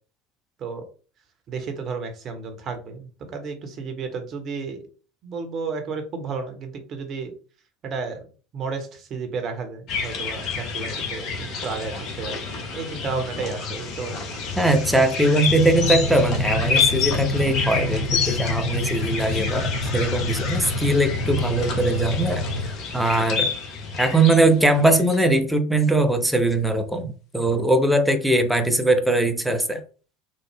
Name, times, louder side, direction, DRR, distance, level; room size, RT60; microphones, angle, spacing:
voice 1, 1.5-4.8 5.2-7.3 7.8-8.2 8.5-11.3 11.6-12.5 12.7-14.3, right 4 dB, 40° right, 0.8 m, -32 dB
sound 1, 9.9-25.2, left 5 dB, 45° left, 0.8 m, -29 dB
voice 2, 14.6-22.4 22.9-23.5 24.0-29.8, right 2 dB, 5° right, 0.5 m, -21 dB
sound 2, 15.4-22.7, left 2 dB, 80° left, 0.5 m, -27 dB
3.2 x 2.0 x 3.3 m
figure-of-eight pair, 70°, 0 cm